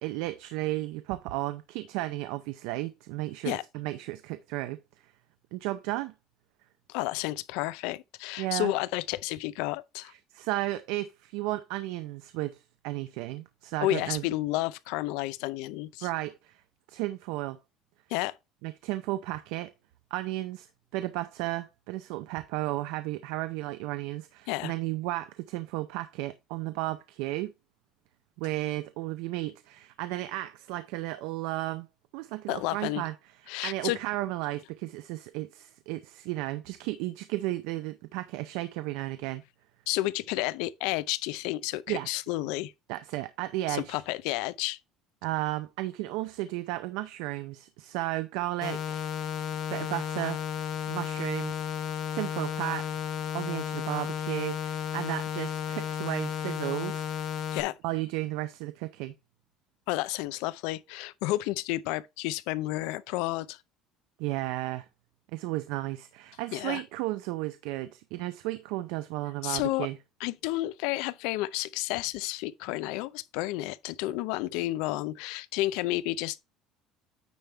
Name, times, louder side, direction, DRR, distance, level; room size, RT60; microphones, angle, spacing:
voice 1, 0.0-4.8 5.5-6.1 8.4-8.7 10.1-14.2 16.0-16.6 16.9-17.6 18.6-19.7 20.1-20.7 20.9-27.5 28.4-31.9 32.1-33.1 33.6-39.4 41.9-42.1 42.9-44.0 45.2-49.1 49.7-50.4 50.9-51.6 52.1-53.0 53.3-57.1 57.8-59.1 64.2-64.9 65.3-70.0, right 17 dB, 85° right, 0.5 m, -34 dB
voice 2, 6.9-10.1 13.8-16.1 18.1-18.3 24.5-24.7 32.5-33.0 33.5-34.0 39.9-42.7 43.7-44.8 57.5-57.8 59.9-63.6 66.5-66.8 69.4-69.9 70.2-76.4, left 17 dB, 90° left, 0.4 m, -31 dB
sound 1, 48.6-57.6, left 9 dB, 40° left, 0.7 m, -33 dB
9.2 x 3.5 x 4.3 m
cardioid pair, 175°, 0 cm